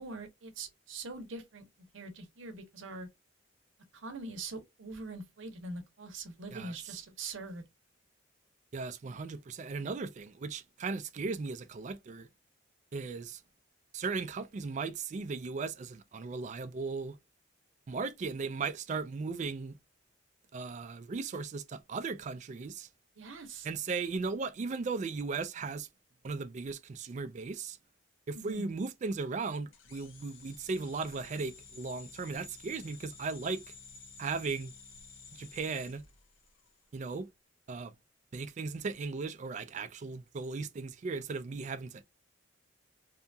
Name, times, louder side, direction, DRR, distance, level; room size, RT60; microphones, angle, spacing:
voice 1, 0.0-1.6 1.9-3.1 3.9-7.6 23.2-23.7 28.3-28.6, right 3 dB, 80° right, 0.7 m, -43 dB
voice 2, 6.5-7.0 8.7-12.3 12.9-13.4 13.9-17.2 17.9-19.8 20.5-22.9 23.6-25.9 26.2-27.8 28.3-33.6 34.2-34.7 35.3-36.0 36.9-37.3 37.7-37.9 38.3-42.0, right 4 dB, 35° right, 0.3 m, -37 dB
sound 1, 29.7-36.8, left 5 dB, 80° left, 0.5 m, -53 dB
2.8 x 2.2 x 2.5 m
head